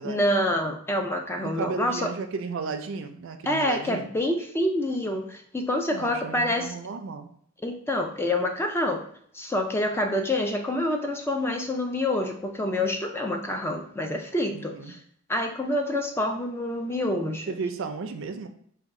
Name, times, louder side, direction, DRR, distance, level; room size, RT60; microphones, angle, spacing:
voice 1, 0.0-2.1 3.5-6.7 7.6-9.0 9.3-15.0 15.3-17.5, left 1 dB, 10° left, 3 dB, 0.3 m, -27 dB
voice 2, 1.4-4.1 5.9-7.3 14.5-14.9 17.5-18.5, right 4 dB, 65° right, 7 dB, 0.4 m, -34 dB
3.5 x 2.2 x 4.1 m, 0.64 s
head